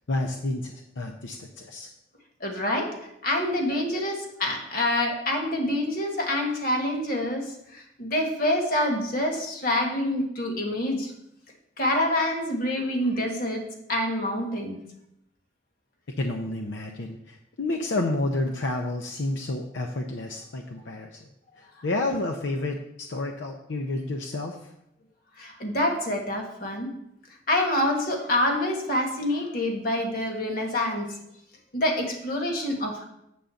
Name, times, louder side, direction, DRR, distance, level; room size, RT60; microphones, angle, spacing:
voice 1, 0.1-1.9 16.2-21.2 21.6-24.7, left 2 dB, 75° left, 2 dB, 0.7 m, -30 dB
voice 2, 2.4-11.1 11.8-14.8 25.4-26.9 27.5-31.2 31.7-33.0, left 1 dB, 50° left, 2 dB, 1.5 m, -27 dB
8.6 x 3.9 x 6.9 m, 0.81 s
head